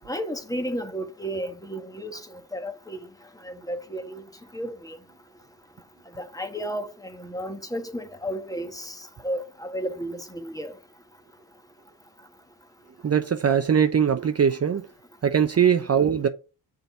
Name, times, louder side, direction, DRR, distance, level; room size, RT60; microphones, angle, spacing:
voice 1, 0.1-3.0 3.4-4.2 4.5-5.0 6.2-10.7, equal, 10° left, 1.4 m, -33 dB
voice 2, 13.0-14.9 15.2-16.3, right 7 dB, 35° right, 0.7 m, -21 dB
6.8 x 4.0 x 5.5 m
cardioid pair, 65°, 44 cm